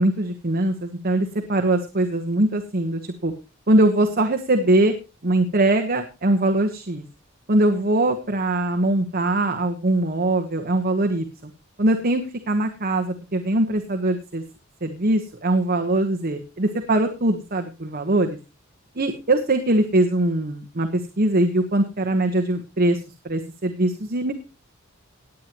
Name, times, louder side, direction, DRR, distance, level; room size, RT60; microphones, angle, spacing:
voice 1, 0.0-3.3 3.7-4.9 5.2-7.0 7.5-11.3 11.8-14.4 14.8-18.4 19.0-23.0 23.2-24.3, right 1 dB, 45° right, 6 dB, 1.2 m, -22 dB
18.5 x 9.3 x 3.0 m, 0.30 s
head